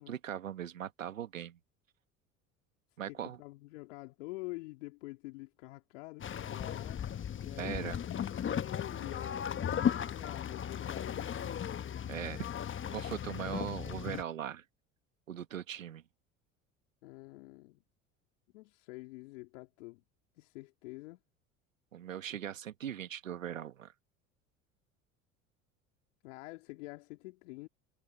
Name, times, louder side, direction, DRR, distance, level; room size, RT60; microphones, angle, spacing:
voice 1, 0.0-1.6 3.0-3.4 7.5-8.0 12.1-12.5 12.9-14.6 15.3-16.0 21.9-23.9, right 10 dB, 90° right, 1.7 m, -40 dB
voice 2, 3.1-11.7 17.0-17.8 18.5-20.0 20.4-21.2 26.2-27.7, left 23 dB, 70° left, 3.0 m, -47 dB
sound 1, 6.2-14.2, left 9 dB, 30° left, 1.2 m, -36 dB
hypercardioid pair, 70°, 38 cm